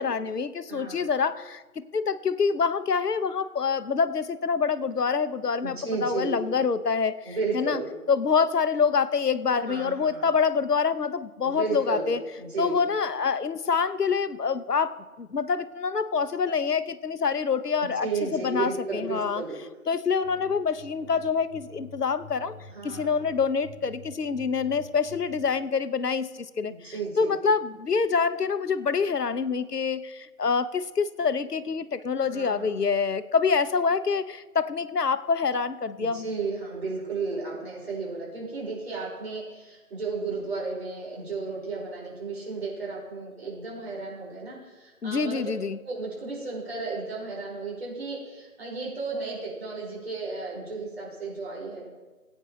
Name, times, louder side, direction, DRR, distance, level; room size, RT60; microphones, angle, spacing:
voice 1, 0.0-1.6 1.9-7.8 8.1-12.2 12.6-19.4 19.9-22.5 22.8-36.3 45.0-45.8, left 5 dB, 90° left, 13 dB, 0.8 m, -26 dB
voice 2, 0.7-1.1 5.6-6.3 7.2-7.8 9.6-10.3 11.4-12.1 12.4-12.8 18.0-19.7 22.7-23.2 26.9-27.3 32.3-32.8 36.0-45.4 45.8-51.9, right 4 dB, 40° right, -4 dB, 4.8 m, -33 dB
sound 1, 20.2-25.4, left 2 dB, 55° left, 2.9 m, -48 dB
20.5 x 9.1 x 3.0 m, 1.2 s
figure-of-eight pair, 160°, 46 cm